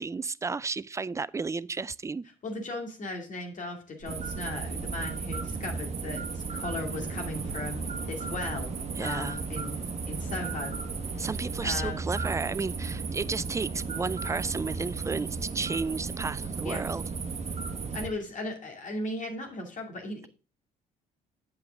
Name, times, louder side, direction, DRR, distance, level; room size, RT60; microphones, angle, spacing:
voice 1, 0.0-2.2 9.0-9.4 11.2-17.0, right 4 dB, 15° right, 0.4 m, -32 dB
voice 2, 2.4-8.7 9.0-9.8 10.1-10.7 11.1-11.3 11.6-12.0 16.6-16.8 17.9-20.3, left 2 dB, 45° left, 2.5 m, -37 dB
sound 1, 4.0-18.1, right 4 dB, 35° right, 1.4 m, -34 dB
sound 2, 6.7-11.8, left 3 dB, 60° left, 3.1 m, -50 dB
8.6 x 7.9 x 3.7 m
hypercardioid pair, 50°, 18 cm